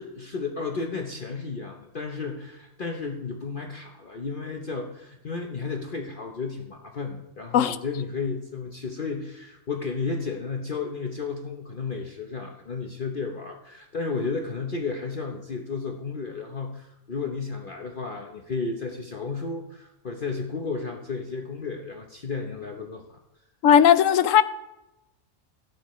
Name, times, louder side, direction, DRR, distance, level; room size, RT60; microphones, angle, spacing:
voice 1, 0.0-23.2, left 4 dB, 45° left, 2 dB, 1.0 m, -33 dB
voice 2, 23.6-24.4, left 9 dB, 75° left, 14 dB, 1.0 m, -17 dB
17.0 x 12.5 x 3.1 m, 0.94 s
omnidirectional pair, 1.4 m